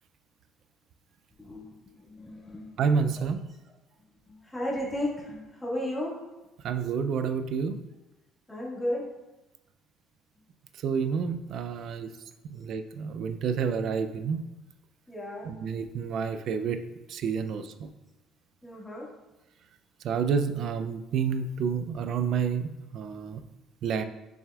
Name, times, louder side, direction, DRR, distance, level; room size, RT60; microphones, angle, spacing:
voice 1, 1.4-1.8 2.1-2.8 4.3-6.1 8.5-9.1 15.1-15.5 18.6-19.1, left 1 dB, 10° left, -5 dB, 1.9 m, -34 dB
voice 2, 2.8-3.4 6.6-7.8 10.8-12.1 12.5-14.4 15.4-16.8 17.1-17.9 20.0-23.4 23.8-24.0, right 6 dB, 60° right, 9 dB, 0.5 m, -29 dB
6.7 x 6.1 x 2.4 m, 1.0 s
cardioid pair, 105°, 0 cm